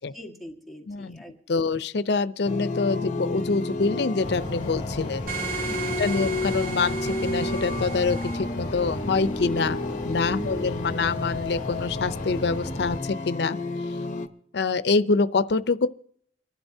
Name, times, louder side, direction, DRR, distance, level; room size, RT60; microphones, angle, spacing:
voice 1, 0.1-1.4 1.7-1.8 5.6-6.3 10.4-10.6, equal, ahead, 1.6 m, -42 dB
voice 2, 0.9-1.2 1.5-5.3 6.0-13.6 14.5-15.9, left 4 dB, 70° left, 0.6 m, -25 dB
sound 1, 2.4-14.3, left 2 dB, 45° left, 1.0 m, -31 dB
sound 2, 4.2-13.0, equal, 25° left, 2.6 m, -35 dB
sound 3, 5.3-8.4, right 6 dB, 55° right, 2.4 m, -35 dB
29.0 x 11.5 x 2.7 m
head